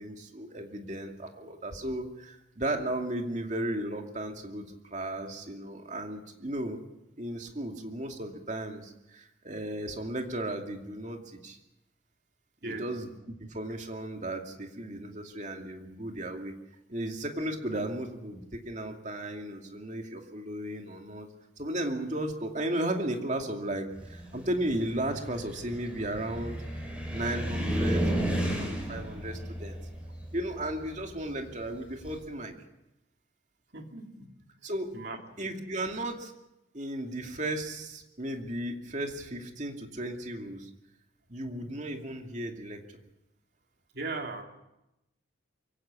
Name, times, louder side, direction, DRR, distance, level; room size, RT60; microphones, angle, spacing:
voice 1, 0.0-4.7 4.9-6.8 7.2-11.6 12.6-13.1 13.5-16.5 16.9-21.3 21.6-26.8 27.1-29.8 30.3-32.5 34.6-34.9 35.4-36.3 36.7-40.7 41.3-43.0, right 1 dB, 40° right, 3 dB, 2.6 m, -35 dB
Car, 24.0-32.2, right 1 dB, 5° right, 5.6 m, -33 dB
voice 2, 33.7-34.3 34.9-35.2 43.9-44.4, right 3 dB, 55° right, 3 dB, 3.0 m, -37 dB
23.5 x 16.5 x 8.5 m, 0.91 s
head